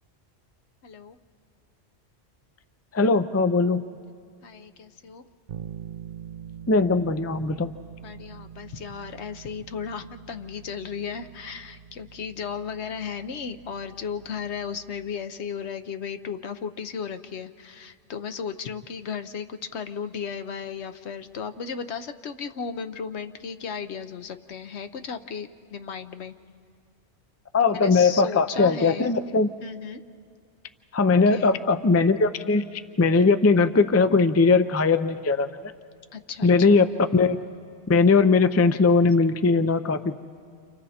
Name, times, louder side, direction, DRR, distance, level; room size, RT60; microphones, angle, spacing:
voice 1, 0.8-1.2 4.4-5.2 8.0-26.3 27.7-29.1 29.6-30.0 31.3-31.6 36.1-36.9, left 6 dB, 75° left, 8 dB, 1.1 m, -35 dB
voice 2, 2.9-3.9 6.7-7.7 27.5-29.5 30.9-35.6 36.4-36.9 37.1-37.4 37.9-40.1, left 4 dB, 25° left, 10 dB, 0.3 m, -20 dB
Bass guitar, 5.5-15.4, right 8 dB, 50° right, 0.7 m, -44 dB
30.0 x 27.5 x 4.3 m, 2.3 s
omnidirectional pair, 1.1 m